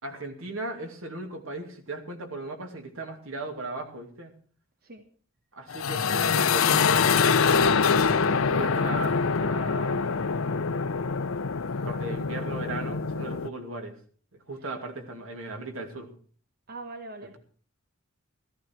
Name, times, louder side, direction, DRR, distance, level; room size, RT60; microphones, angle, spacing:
voice 1, 0.0-4.3 5.5-10.1 11.8-13.9 14.5-16.1, right 2 dB, 85° right, 5 dB, 2.5 m, -37 dB
sound 1, 5.7-13.5, left 5 dB, 85° left, 0.7 m, -24 dB
voice 2, 16.7-17.4, right 2 dB, 50° right, 7 dB, 1.2 m, -42 dB
15.0 x 14.0 x 4.6 m, 0.44 s
head